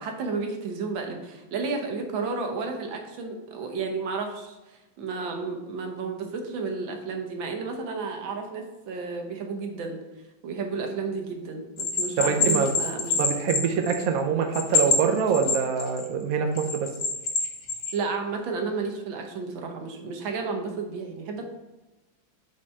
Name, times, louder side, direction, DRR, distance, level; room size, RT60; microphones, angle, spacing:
voice 1, 0.0-10.0 10.4-13.2 17.9-21.4, right 4 dB, 80° right, 3 dB, 1.7 m, -32 dB
Bell, 11.8-14.2 14.5-16.1 16.6-17.9, left 4 dB, 65° left, 1.9 m, -25 dB
voice 2, 12.2-12.8 13.2-16.9, right 6 dB, 60° right, 4 dB, 1.0 m, -25 dB
5.3 x 4.1 x 5.5 m, 1.1 s
omnidirectional pair, 2.1 m